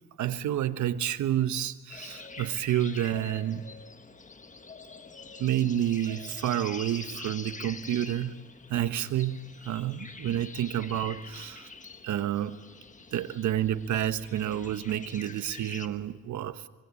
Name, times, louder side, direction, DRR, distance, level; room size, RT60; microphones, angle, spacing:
voice 1, 0.2-3.6 5.4-8.3 8.7-9.4 9.6-11.7 12.0-12.6 13.1-16.6, right 11 dB, 70° right, 11 dB, 1.3 m, -29 dB
sound 1, 1.9-15.9, left 4 dB, 25° left, 1.5 m, -45 dB
25.5 x 24.0 x 8.4 m, 1.3 s
cardioid pair, 90°, 30 cm